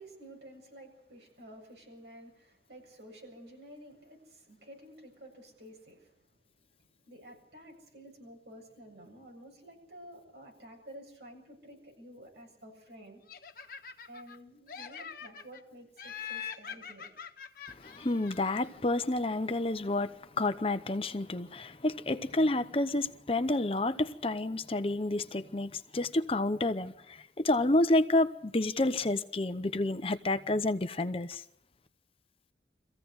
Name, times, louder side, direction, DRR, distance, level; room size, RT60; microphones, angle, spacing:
voice 1, 0.0-13.2 14.1-17.1, right 1 dB, 70° right, 7.5 m, -52 dB
Laughter, 13.3-14.4 14.7-15.6 16.0-18.8, left 7 dB, 55° left, 1.3 m, -44 dB
voice 2, 17.7-31.4, left 2 dB, 30° left, 0.8 m, -29 dB
24.0 x 15.5 x 8.0 m
head